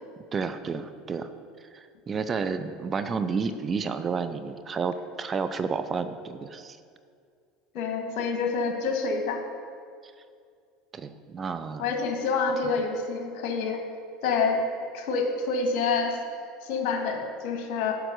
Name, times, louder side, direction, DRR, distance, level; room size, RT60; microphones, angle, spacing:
voice 1, 0.3-1.3 1.7-6.8 10.9-11.8, right 5 dB, 30° right, 10 dB, 0.6 m, -31 dB
voice 2, 7.7-9.4 11.8-13.8 14.2-14.6 14.9-16.2 16.6-17.9, left 4 dB, 60° left, 3 dB, 1.8 m, -27 dB
8.1 x 6.0 x 7.9 m, 2.3 s
hypercardioid pair, 80°, 0 cm